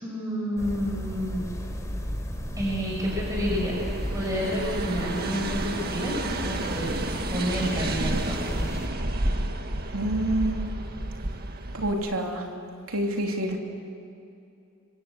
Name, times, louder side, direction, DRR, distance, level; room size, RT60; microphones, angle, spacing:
voice 1, 0.0-1.6 2.6-3.8 4.1-6.1 6.4-6.9 7.3-8.7, equal, 15° right, -4 dB, 5.9 m, -29 dB
sound 1, 0.6-8.9, equal, 15° left, 3.4 m, -34 dB
sound 2, 3.0-11.9, right 1 dB, 45° right, 1.8 m, -31 dB
voice 2, 9.9-10.7 11.7-12.5 12.9-13.6, right 1 dB, 85° right, 2 dB, 3.2 m, -27 dB
26.5 x 25.5 x 8.1 m, 2.6 s
head